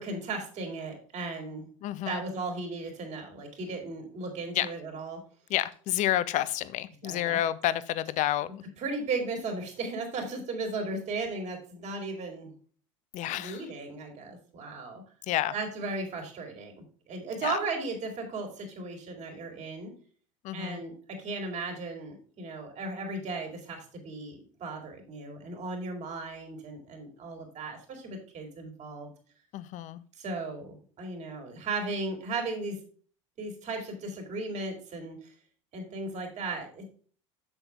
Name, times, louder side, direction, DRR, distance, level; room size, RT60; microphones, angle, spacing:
voice 1, 0.0-1.7 2.1-5.2 7.0-7.4 8.8-12.5 13.3-15.0 15.5-19.9 20.5-20.9 21.2-29.1 30.2-32.8 33.4-35.2 35.7-36.9, right 3 dB, 45° right, 4 dB, 3.7 m, -36 dB
voice 2, 1.8-2.2 4.5-4.7 5.5-8.5 13.1-13.7 15.3-15.5 17.4-17.6 20.4-20.8 29.5-30.0, left 13 dB, 50° left, 17 dB, 0.7 m, -29 dB
8.0 x 7.1 x 3.5 m, 0.43 s
hypercardioid pair, 80°, 17 cm